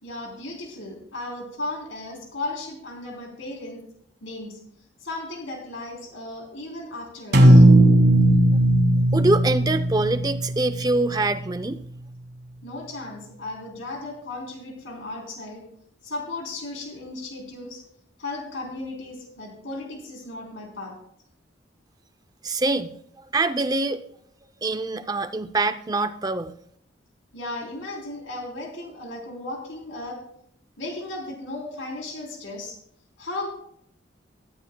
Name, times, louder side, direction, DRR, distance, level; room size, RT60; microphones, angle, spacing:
voice 1, 0.0-3.8 4.2-4.6 5.0-7.7 12.6-15.6 16.0-17.8 18.2-20.9 27.3-30.2 30.8-32.8 33.2-33.5, left 2 dB, 80° left, 0 dB, 3.6 m, -35 dB
sound 1, 7.3-11.5, right 1 dB, 55° right, 1.5 m, -17 dB
voice 2, 9.1-11.8 22.4-22.9 23.3-24.0 24.6-26.5, right 2 dB, 20° right, 10 dB, 0.4 m, -24 dB
16.5 x 13.0 x 2.2 m, 0.69 s
head